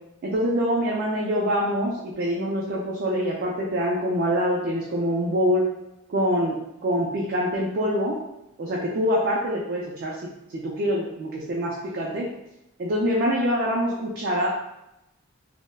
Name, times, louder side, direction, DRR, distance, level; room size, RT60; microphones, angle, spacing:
voice 1, 0.2-5.6 6.1-8.2 8.6-10.1 10.5-12.3 12.8-14.5, equal, 50° right, -3 dB, 0.4 m, -25 dB
3.2 x 2.0 x 2.3 m, 0.89 s
head